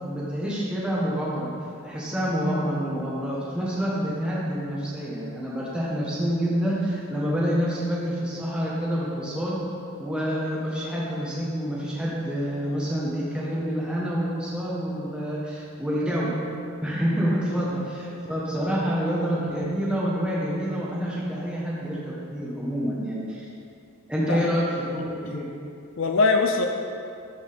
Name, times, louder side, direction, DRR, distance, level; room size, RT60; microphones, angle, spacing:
voice 1, 0.0-1.5 1.8-9.6 10.0-16.3 16.8-23.5 24.1-24.6 24.9-25.5, equal, 5° right, -7 dB, 1.3 m, -27 dB
voice 2, 26.0-26.7, left 3 dB, 70° left, 4 dB, 0.5 m, -23 dB
13.0 x 6.3 x 3.5 m, 2.6 s
head